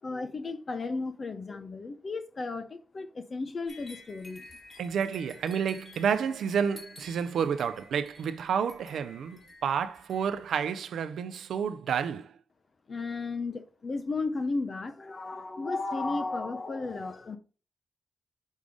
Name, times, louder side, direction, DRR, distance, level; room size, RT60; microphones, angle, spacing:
voice 1, 0.0-4.4 12.9-17.4, left 3 dB, 50° left, 0.6 m, -34 dB
sound 1, 3.7-10.7, left 2 dB, 30° left, 2.7 m, -52 dB
voice 2, 4.8-12.3, right 7 dB, 80° right, 0.5 m, -30 dB
6.3 x 3.5 x 5.2 m
supercardioid pair, 45°, 0 cm